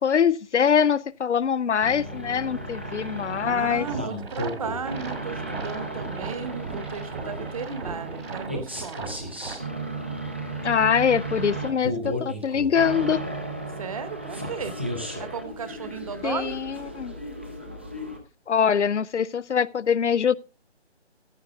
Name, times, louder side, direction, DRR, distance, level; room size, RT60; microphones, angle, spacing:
voice 1, 0.0-3.9 10.6-13.2 16.2-17.1 18.5-20.3, left 7 dB, 85° left, 0.6 m, -23 dB
sound 1, 1.8-18.2, right 1 dB, 10° right, 0.5 m, -34 dB
voice 2, 3.4-9.2 13.8-14.8 15.2-16.6, right 6 dB, 30° right, 1.0 m, -35 dB
sound 2, 3.8-9.6, right 4 dB, 60° right, 2.0 m, -38 dB
14.5 x 8.0 x 3.5 m
figure-of-eight pair, 150°, 34 cm